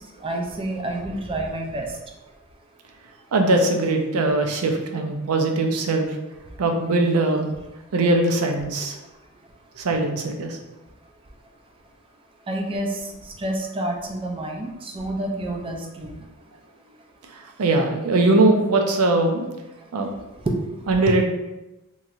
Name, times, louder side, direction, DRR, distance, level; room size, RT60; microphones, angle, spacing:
voice 1, 0.2-1.9 12.5-12.9 13.4-16.2 20.5-20.6, right 1 dB, 25° right, 1 dB, 0.4 m, -28 dB
voice 2, 3.3-6.2 6.6-7.5 7.9-9.0 9.8-10.6 17.3-19.5 19.9-20.1 20.9-21.3, right 2 dB, 85° right, 4 dB, 0.5 m, -21 dB
3.0 x 2.7 x 2.4 m, 1.0 s
head